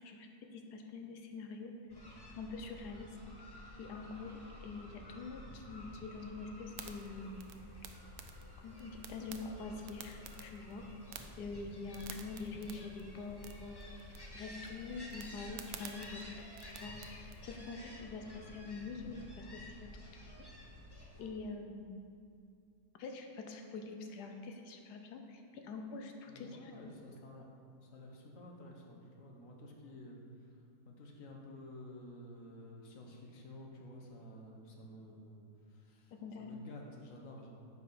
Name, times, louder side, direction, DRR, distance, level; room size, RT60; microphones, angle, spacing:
voice 1, 0.0-1.7 2.4-3.1 3.8-7.5 8.6-10.8 11.4-14.0 14.3-16.3 16.6-20.3 21.2-22.0 23.0-26.7 36.2-36.5, left 4 dB, 80° left, 4 dB, 1.3 m, -45 dB
sound 1, 1.9-21.3, left 1 dB, 25° left, 0.5 m, -51 dB
sound 2, 6.7-17.4, right 8 dB, 70° right, 0.9 m, -54 dB
voice 2, 26.3-27.5 27.8-30.6 30.8-36.1 36.4-37.5, left 1 dB, 60° left, 0 dB, 1.3 m, -52 dB
6.7 x 4.9 x 5.0 m, 2.4 s
omnidirectional pair, 1.7 m